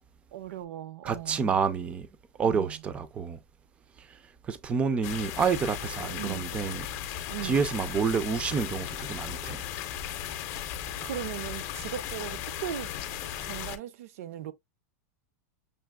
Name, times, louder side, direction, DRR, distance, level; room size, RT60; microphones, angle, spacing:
voice 1, 0.3-1.6 2.4-2.8 6.2-6.5 7.3-7.6 11.0-12.9 13.4-14.5, right 12 dB, 65° right, 0.5 m, -38 dB
voice 2, 1.0-2.1 2.4-3.4 4.5-6.9 7.4-9.6, right 6 dB, 15° right, 0.4 m, -28 dB
sound 1, 5.0-13.8, left 10 dB, 35° left, 0.6 m, -36 dB
6.3 x 2.8 x 2.3 m
supercardioid pair, 165°, 8 cm